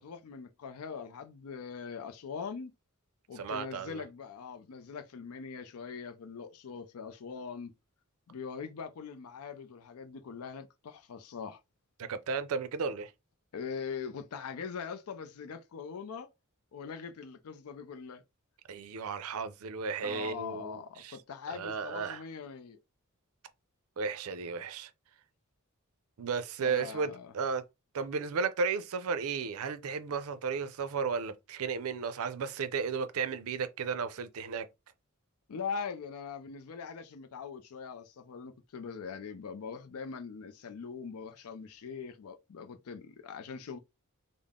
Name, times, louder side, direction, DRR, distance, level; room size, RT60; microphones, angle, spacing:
voice 1, 0.0-2.7 3.3-7.7 8.3-11.6 13.5-16.3 16.7-18.2 20.0-22.8 26.6-27.3 35.5-43.8, left 6 dB, 75° left, 0.4 m, -42 dB
voice 2, 3.4-4.0 12.0-13.1 18.7-21.2 21.5-22.2 24.0-24.9 26.2-27.6 27.9-34.7, right 5 dB, 70° right, 0.5 m, -34 dB
3.6 x 2.0 x 3.5 m
head